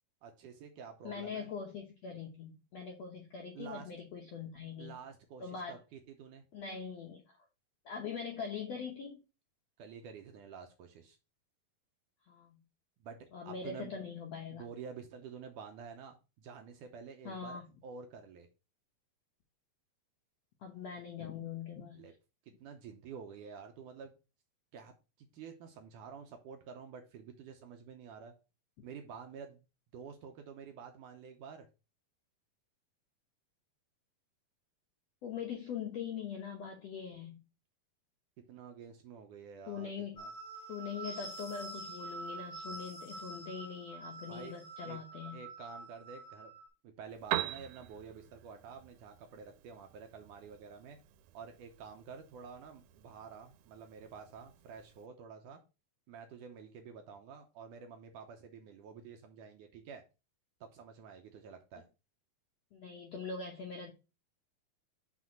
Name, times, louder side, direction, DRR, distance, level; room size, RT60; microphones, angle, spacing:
voice 1, 0.2-1.5 3.6-3.9 4.8-6.4 9.8-11.2 13.0-13.9 14.5-18.5 22.0-22.1 22.6-24.1 24.7-28.3 28.8-29.6 29.9-31.7 38.5-40.3 44.3-44.5 44.8-45.0 45.3-46.5 46.8-51.0 51.3-55.6 56.1-60.0 60.6-61.9, right 6 dB, 75° right, 5 dB, 2.1 m, -49 dB
voice 2, 1.0-5.0 5.4-5.8 6.5-7.2 7.8-9.2 12.3-12.6 13.3-14.7 17.2-17.7 20.6-22.1 35.2-37.4 39.7-40.2 40.7-45.4 62.7-63.9, left 6 dB, 70° left, 1 dB, 1.5 m, -42 dB
sound 1, 40.2-46.7, right 2 dB, 40° left, 2.9 m, -46 dB
Piano, 47.1-55.1, right 14 dB, 90° right, 2.5 m, -44 dB
6.1 x 4.1 x 6.0 m, 0.30 s
omnidirectional pair, 4.3 m